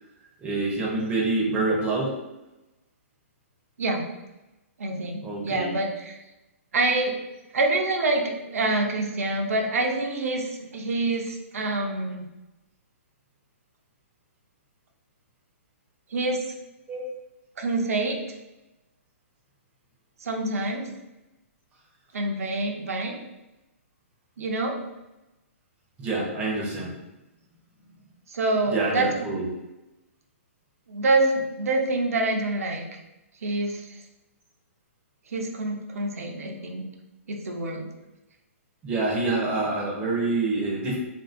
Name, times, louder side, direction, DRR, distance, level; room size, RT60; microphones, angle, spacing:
voice 1, 0.4-2.1 5.2-5.7 16.9-17.1 20.6-20.7 26.0-27.0 28.7-29.5 38.8-41.0, right 2 dB, 15° right, -3 dB, 0.6 m, -26 dB
voice 2, 3.8-4.1 4.8-6.2 6.7-7.1 7.5-12.2 16.1-16.4 17.6-18.2 20.2-20.9 22.1-23.2 24.4-24.8 28.3-29.1 30.9-33.0 33.4-34.0 35.3-36.8 37.3-37.9, right 2 dB, 80° right, 2 dB, 0.6 m, -26 dB
2.8 x 2.6 x 2.5 m, 0.99 s
hypercardioid pair, 150°, 8 cm